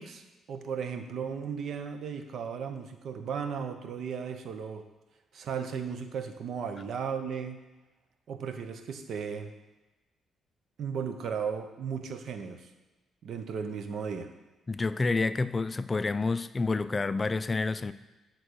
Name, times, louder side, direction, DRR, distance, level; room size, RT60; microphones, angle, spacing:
voice 1, 0.0-4.8 5.3-7.6 8.3-9.5 10.8-12.7 13.2-14.3, right 6 dB, 65° right, 7 dB, 0.8 m, -35 dB
voice 2, 14.7-17.9, left 3 dB, 25° left, 13 dB, 0.4 m, -28 dB
8.7 x 3.9 x 6.3 m, 1.1 s
cardioid pair, 90°, 0 cm